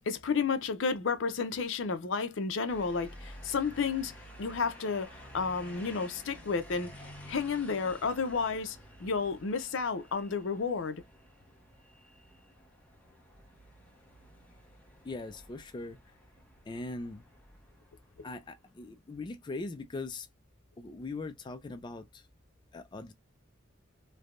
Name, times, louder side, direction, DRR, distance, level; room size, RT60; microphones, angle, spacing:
voice 1, 0.1-6.9 7.3-11.0, left 5 dB, 70° left, 0.6 m, -32 dB
sound 1, 2.7-18.8, equal, 10° left, 0.8 m, -52 dB
voice 2, 15.0-16.0 16.7-17.2 18.2-20.3 20.8-22.3 22.7-23.1, left 3 dB, 25° left, 0.3 m, -40 dB
3.3 x 2.1 x 2.4 m
head